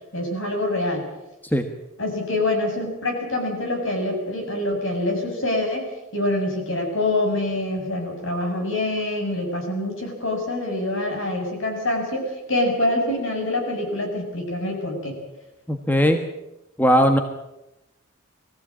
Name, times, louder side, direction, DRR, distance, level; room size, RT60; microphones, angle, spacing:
voice 1, 0.1-1.0 2.0-15.2, left 1 dB, 60° left, 2 dB, 7.5 m, -25 dB
voice 2, 15.7-16.2 16.8-17.2, equal, 10° left, 6 dB, 1.3 m, -18 dB
22.0 x 15.5 x 8.8 m, 0.93 s
head